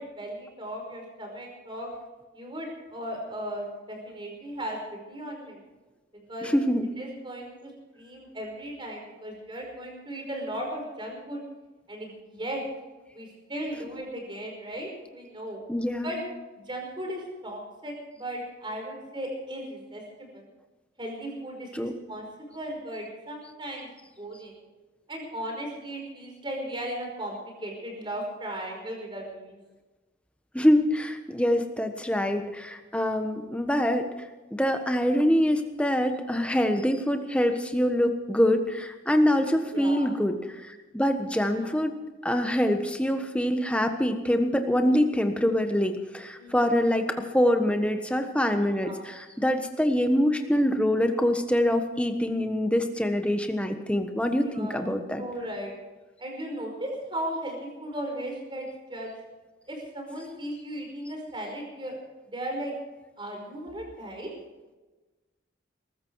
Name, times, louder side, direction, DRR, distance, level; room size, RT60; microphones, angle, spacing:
voice 1, 0.0-1.9 2.3-4.8 5.1-5.6 6.3-6.6 7.0-11.4 11.9-12.6 13.1-15.6 16.0-16.2 16.7-20.4 21.0-23.9 24.2-24.6 25.1-29.6 39.7-40.2 41.5-41.8 46.4-46.7 48.7-49.1 54.4-54.9 55.2-55.7 56.2-59.1 59.7-62.0 62.3-62.7 63.2-64.3, right 1 dB, 25° right, 1 dB, 5.2 m, -36 dB
voice 2, 6.4-6.9 15.7-16.1 21.7-21.9 30.5-34.1 34.5-40.3 40.6-41.9 42.2-55.2, equal, 5° left, 6 dB, 1.3 m, -25 dB
22.0 x 13.5 x 4.8 m, 1.2 s
head